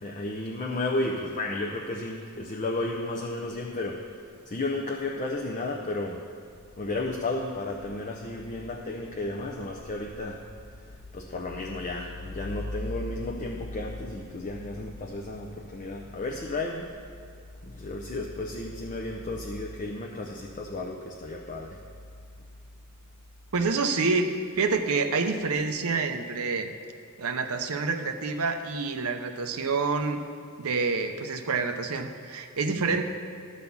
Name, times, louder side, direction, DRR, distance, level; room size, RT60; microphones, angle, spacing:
voice 1, 0.0-4.0 4.5-6.2 6.8-10.5 10.8-10.9 11.1-16.9 17.6-21.8 32.7-33.0, left 2 dB, 35° left, 0 dB, 0.6 m, -33 dB
voice 2, 23.5-24.3 24.6-26.7 27.2-30.2 30.6-33.0, right 4 dB, 75° right, 6 dB, 0.7 m, -27 dB
12.0 x 4.1 x 7.0 m, 2.3 s
head